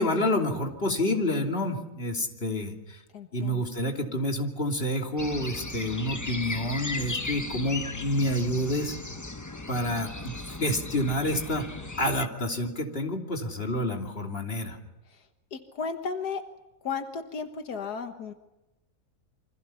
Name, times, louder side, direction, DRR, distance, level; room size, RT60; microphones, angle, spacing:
voice 1, 0.0-3.0 3.3-9.0 9.7-11.7 12.0-14.8, left 1 dB, 35° left, 2 dB, 3.1 m, -28 dB
voice 2, 3.1-3.6 15.5-16.4 16.8-18.3, left 5 dB, 85° left, 6 dB, 1.9 m, -34 dB
sound 1, 5.2-12.3, left 2 dB, 15° left, 0.7 m, -37 dB
28.0 x 25.0 x 5.8 m, 0.96 s
omnidirectional pair, 1.7 m